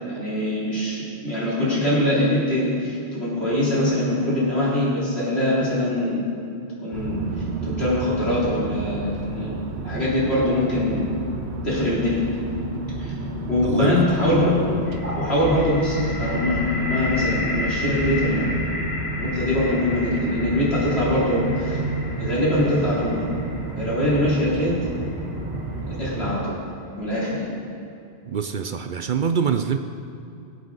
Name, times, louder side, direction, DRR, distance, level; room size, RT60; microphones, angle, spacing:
voice 1, 0.1-6.2 6.8-9.6 9.8-11.1 11.6-12.2 13.0-13.1 13.5-14.7 15.0-18.5 19.2-21.8 22.2-23.3 23.8-24.8 25.8-26.6 27.0-27.5, left 1 dB, 75° left, -8 dB, 3.7 m, -23 dB
sound 1, 6.9-26.3, right 2 dB, 80° right, 1.3 m, -30 dB
voice 2, 13.6-14.0 28.3-29.8, right 7 dB, 60° right, 7 dB, 0.6 m, -24 dB
sound 2, 14.9-26.7, left 2 dB, 55° left, 1.7 m, -33 dB
20.0 x 8.0 x 4.0 m, 2.6 s
omnidirectional pair, 1.1 m